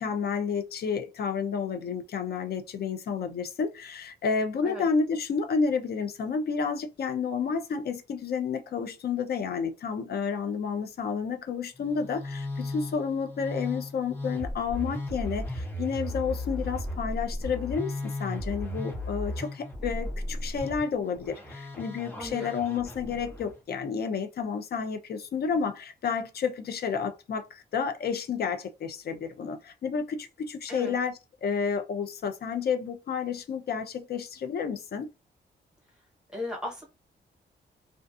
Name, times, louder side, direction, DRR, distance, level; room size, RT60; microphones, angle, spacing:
voice 1, 0.0-35.1, left 6 dB, 60° left, 0.5 m, -30 dB
Musical instrument, 11.8-23.5, left 1 dB, 10° left, 0.7 m, -35 dB
voice 2, 22.1-22.5 30.7-30.9 36.3-36.8, left 2 dB, 5° right, 1.0 m, -36 dB
2.4 x 2.3 x 2.5 m
wide cardioid pair, 155°, 18 cm